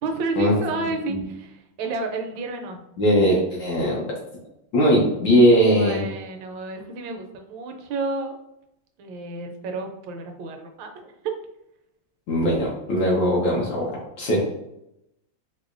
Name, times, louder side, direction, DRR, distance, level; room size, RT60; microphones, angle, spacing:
voice 1, 0.0-2.8 5.8-8.4 9.0-11.3, right 3 dB, 75° right, 4 dB, 1.2 m, -31 dB
voice 2, 3.0-4.1 4.7-6.1 12.3-13.9 14.2-14.4, equal, 70° left, -4 dB, 1.5 m, -19 dB
4.7 x 2.1 x 2.4 m, 0.84 s
omnidirectional pair, 2.2 m